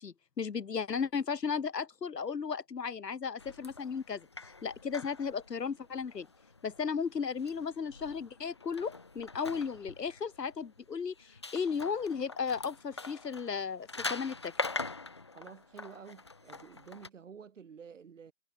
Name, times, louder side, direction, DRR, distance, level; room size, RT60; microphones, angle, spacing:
voice 1, 0.0-6.3 6.6-14.5, left 6 dB, 80° left, 2.6 m, -35 dB
sound 1, 3.4-17.1, left 3 dB, 15° left, 0.9 m, -44 dB
voice 2, 15.3-18.3, right 6 dB, 50° right, 5.8 m, -50 dB
hypercardioid pair, 170°, 49 cm